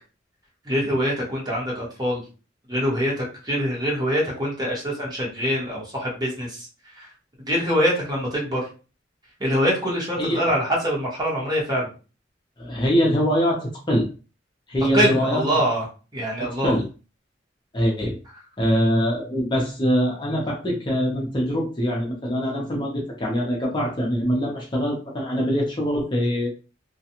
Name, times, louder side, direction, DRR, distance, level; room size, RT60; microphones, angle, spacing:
voice 1, 0.6-2.2 2.7-6.7 7.0-7.1 7.5-8.7 9.4-11.9 14.9-15.8 16.1-16.7, equal, 20° right, -5 dB, 1.1 m, -24 dB
voice 2, 12.6-14.1 14.7-15.4 16.4-16.8 17.7-18.2 18.6-26.5, equal, 25° left, -2 dB, 0.6 m, -23 dB
2.4 x 2.2 x 2.8 m, 0.34 s
head